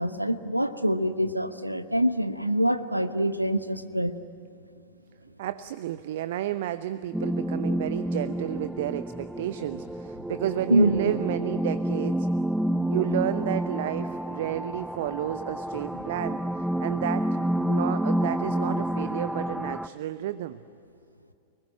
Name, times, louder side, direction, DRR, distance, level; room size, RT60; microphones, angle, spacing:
voice 1, 0.0-4.1 10.7-11.1, equal, 90° right, 11 dB, 1.1 m, -25 dB
voice 2, 5.4-12.3 12.9-20.6, right 13 dB, 55° right, 14 dB, 0.7 m, -31 dB
sound 1, 7.1-19.9, right 1 dB, 5° right, 0.5 m, -29 dB
29.5 x 20.5 x 9.8 m, 2.7 s
figure-of-eight pair, 90°, 0 cm